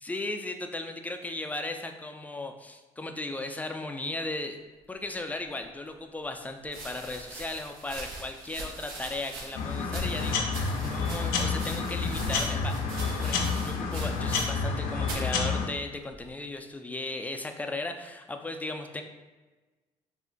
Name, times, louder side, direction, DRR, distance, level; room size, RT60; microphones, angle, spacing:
voice 1, 0.0-4.6 4.9-12.8 13.0-19.0, left 2 dB, 10° left, 5 dB, 0.3 m, -36 dB
sound 1, 5.6-5.7 6.6-14.8 15.0-15.3 16.1-16.5, right 2 dB, 80° right, 0.6 m, -42 dB
sound 2, 9.5-15.7, left 4 dB, 75° left, 0.4 m, -29 dB
2.5 x 2.1 x 3.7 m, 1.2 s
supercardioid pair, 55°, 15 cm